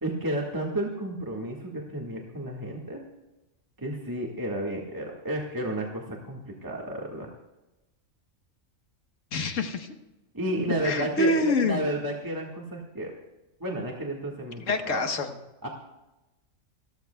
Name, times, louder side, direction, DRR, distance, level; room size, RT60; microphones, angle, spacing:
voice 1, 0.0-3.0 3.8-7.3 10.3-13.1 13.6-15.1 15.6-15.7, right 1 dB, 15° right, -2 dB, 1.7 m, -32 dB
voice 2, 9.3-9.9 10.8-11.8 14.7-15.3, left 2 dB, 75° left, 6 dB, 1.5 m, -26 dB
29.5 x 13.0 x 2.3 m, 1.0 s
omnidirectional pair, 1.3 m